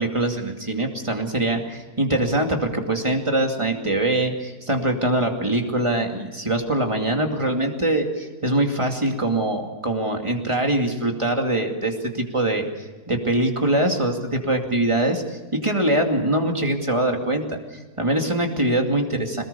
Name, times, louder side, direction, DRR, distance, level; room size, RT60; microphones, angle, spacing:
voice 1, 0.0-12.7 13.1-19.4, right 1 dB, 20° right, 3 dB, 2.5 m, -23 dB
23.0 x 20.0 x 7.0 m, 1.3 s
omnidirectional pair, 1.7 m